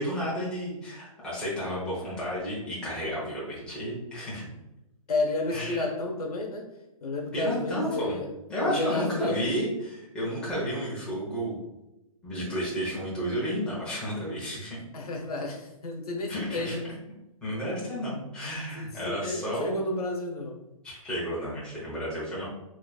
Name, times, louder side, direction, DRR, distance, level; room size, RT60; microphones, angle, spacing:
voice 1, 0.0-4.5 5.5-5.9 7.3-8.2 8.5-11.6 12.2-14.8 16.3-16.7 17.4-20.0 20.8-22.4, equal, 5° left, -8 dB, 1.1 m, -32 dB
voice 2, 5.1-6.6 7.0-8.3 8.6-9.5 14.9-16.8 18.7-20.6, left 2 dB, 90° left, 1 dB, 1.0 m, -31 dB
3.8 x 3.2 x 2.3 m, 0.95 s
hypercardioid pair, 160°, 19 cm